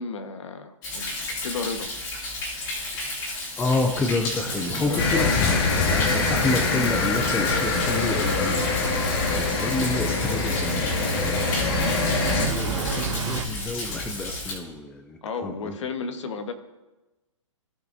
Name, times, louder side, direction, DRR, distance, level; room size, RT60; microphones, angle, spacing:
voice 1, 0.0-1.9 4.8-5.8 11.3-11.7 12.6-13.3 15.2-16.5, left 5 dB, 65° left, 7 dB, 1.3 m, -34 dB
Thunder, 0.8-14.5, left 2 dB, 25° left, 2.7 m, -32 dB
voice 2, 3.6-11.9 12.2-15.8, left 2 dB, 5° left, 6 dB, 0.3 m, -30 dB
sound 1, 4.4-13.5, right 8 dB, 60° right, 0.9 m, -34 dB
sound 2, 5.0-12.5, left 4 dB, 45° left, 1.8 m, -24 dB
17.0 x 6.0 x 2.6 m, 1.1 s
hypercardioid pair, 155°, 17 cm